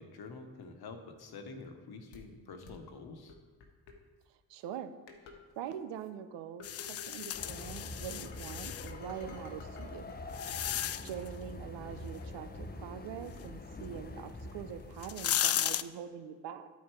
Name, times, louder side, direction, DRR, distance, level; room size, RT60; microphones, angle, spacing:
voice 1, 0.0-3.3 10.7-10.9, left 4 dB, 60° left, 6 dB, 1.3 m, -47 dB
sound 1, 2.1-2.2 2.7-2.8 3.3-3.9 4.6-4.7 5.1-5.4 5.7-6.1 6.6-7.7 8.0-10.9 11.1-13.7, left 4 dB, 85° left, 1.0 m, -55 dB
voice 2, 4.5-5.0 5.6-10.0 11.0-16.7, right 9 dB, 75° right, 10 dB, 0.8 m, -44 dB
sound 2, 6.6-8.9 9.7-11.3 14.3-14.4 14.9-15.8, left 11 dB, 35° left, 0.4 m, -34 dB
Train, 7.3-15.5, left 2 dB, 20° left, 0.8 m, -45 dB
10.5 x 4.5 x 4.7 m, 1.5 s
hypercardioid pair, 45°, 43 cm